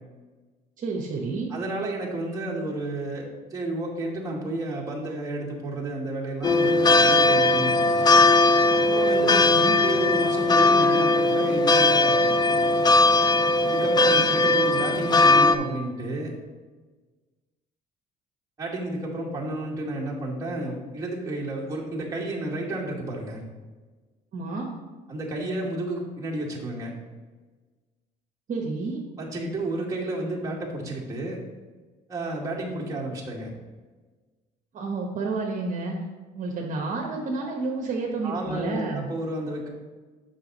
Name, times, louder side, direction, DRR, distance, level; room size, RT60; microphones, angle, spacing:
voice 1, 0.8-1.5 9.3-9.8 24.3-24.7 28.5-29.0 34.7-36.0 36.3-39.1, right 3 dB, 50° right, -1 dB, 1.1 m, -30 dB
voice 2, 1.5-8.1 8.7-9.5 9.8-12.2 13.7-16.3 18.6-23.4 25.1-26.9 29.2-31.4 32.1-33.5 38.2-39.7, right 1 dB, 20° right, -5 dB, 2.0 m, -31 dB
sound 1, 6.4-15.6, left 2 dB, 25° left, 0.4 m, -19 dB
6.9 x 6.0 x 3.9 m, 1.4 s
cardioid pair, 110°, 17 cm